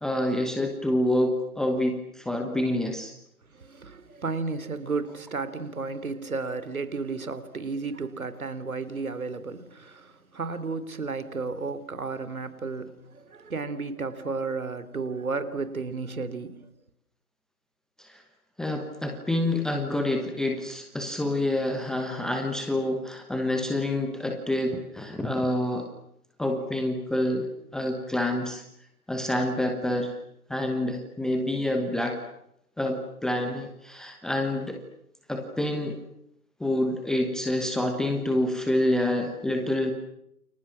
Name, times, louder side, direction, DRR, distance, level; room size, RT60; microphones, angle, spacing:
voice 1, 0.0-3.1 18.0-18.2 18.6-25.9 26.4-28.6 29.1-30.1 30.5-32.2 32.8-34.8 35.3-36.0 36.6-39.9, left 1 dB, ahead, 1.1 m, -27 dB
voice 2, 3.5-16.7, right 4 dB, 65° right, 3.9 m, -33 dB
30.0 x 28.5 x 6.1 m
figure-of-eight pair, 140°, 46 cm